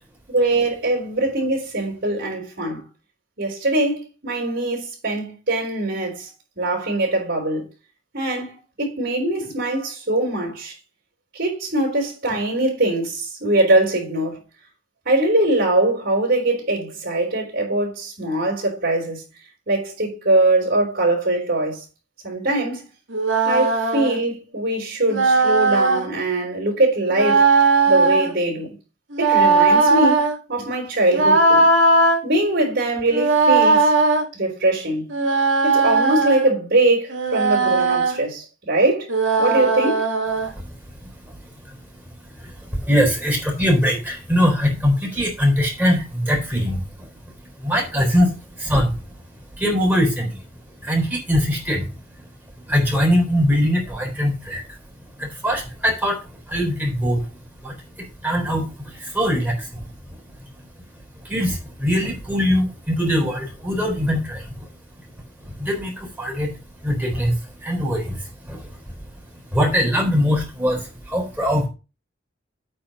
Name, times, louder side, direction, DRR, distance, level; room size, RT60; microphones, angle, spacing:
voice 1, 0.3-2.8 3.4-6.3 6.6-7.6 8.1-10.7 11.3-14.4 15.1-19.2 19.7-21.8 22.2-22.8 23.4-27.5 27.9-28.7 29.2-31.7 32.2-33.9 34.3-35.1 35.6-39.1 39.4-40.1, right 2 dB, 55° right, 3.9 m, -22 dB
sound 1, 23.1-24.2 25.1-26.1 27.1-28.3 29.1-30.3 31.1-32.2 33.1-34.2 35.1-36.5 37.1-38.2 39.1-40.5, right 3 dB, 80° right, 2.1 m, -18 dB
voice 2, 42.4-46.8 47.6-48.9 49.6-50.4 50.8-51.9 52.7-54.6 55.2-56.2 56.5-57.2 57.6-59.9 61.2-64.5 65.4-66.5 66.8-68.6 69.5-71.7, equal, 10° right, 3.9 m, -22 dB
8.7 x 4.4 x 6.4 m
head